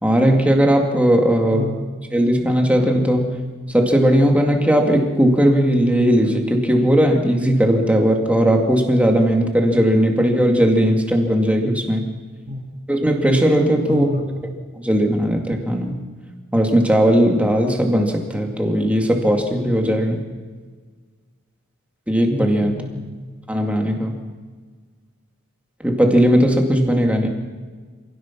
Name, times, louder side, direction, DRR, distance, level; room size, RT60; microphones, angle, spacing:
voice 1, 0.0-1.7 2.1-3.4 3.7-12.1 12.9-14.1 14.8-16.0 16.5-20.2 22.1-22.8 23.5-24.2 25.8-27.3, equal, 5° right, 2 dB, 2.3 m, -17 dB
voice 2, 13.8-14.4 22.6-23.1, left 1 dB, 45° right, -1 dB, 2.2 m, -28 dB
27.0 x 17.0 x 6.1 m, 1.5 s
head